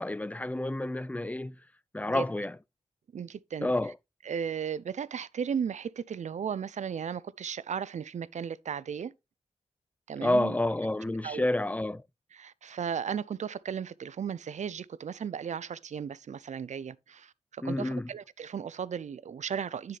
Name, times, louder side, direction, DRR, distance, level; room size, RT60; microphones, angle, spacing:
voice 1, 0.0-1.6 1.9-2.6 3.6-3.9 10.2-12.0 17.6-18.1, left 1 dB, 10° left, 0.4 m, -29 dB
voice 2, 3.1-3.7 4.2-9.1 10.1-10.5 11.2-11.4 12.3-20.0, right 7 dB, 70° right, 0.5 m, -35 dB
10.0 x 6.7 x 3.3 m
cardioid pair, 75°, 13 cm